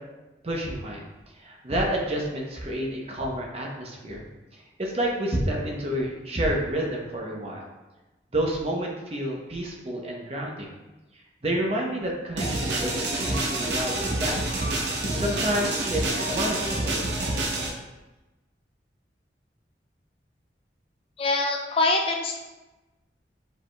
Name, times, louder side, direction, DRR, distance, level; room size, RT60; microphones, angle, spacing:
voice 1, 0.4-1.0 1.4-4.2 4.8-7.7 8.3-10.7 11.4-14.5 15.1-17.1, right 1 dB, 35° right, -1 dB, 0.7 m, -29 dB
sound 1, 12.4-17.7, right 2 dB, 75° right, 0.7 m, -27 dB
voice 2, 21.2-22.4, left 3 dB, 30° left, 2 dB, 0.3 m, -24 dB
4.8 x 4.6 x 2.2 m, 1.1 s
head